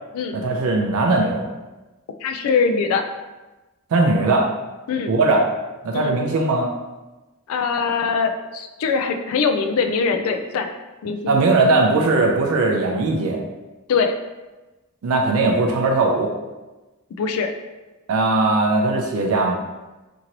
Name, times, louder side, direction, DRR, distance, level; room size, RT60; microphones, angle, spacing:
voice 1, 0.3-1.5 3.9-4.5 5.1-5.4 5.8-6.7 11.3-13.4 15.0-16.3 18.1-19.6, right 2 dB, 70° right, 1 dB, 0.4 m, -19 dB
voice 2, 2.2-3.0 4.9-5.1 5.9-6.2 7.5-10.7 11.0-11.4 13.9-14.1 17.2-17.5, left 5 dB, 70° left, 8 dB, 0.3 m, -22 dB
2.9 x 2.6 x 2.9 m, 1.1 s
head